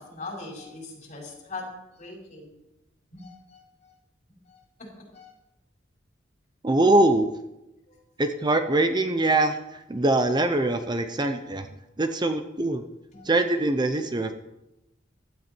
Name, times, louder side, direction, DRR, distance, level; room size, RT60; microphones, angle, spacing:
voice 1, 0.0-1.7 2.0-2.6 3.1-3.9 4.5-4.9 5.1-5.3 7.9-8.0 13.1-13.3, left 3 dB, 40° left, -1 dB, 5.0 m, -41 dB
voice 2, 6.6-7.3 8.2-11.7 12.0-12.8 13.2-14.3, right 2 dB, 25° right, 8 dB, 0.7 m, -23 dB
15.5 x 12.5 x 4.5 m, 0.94 s
head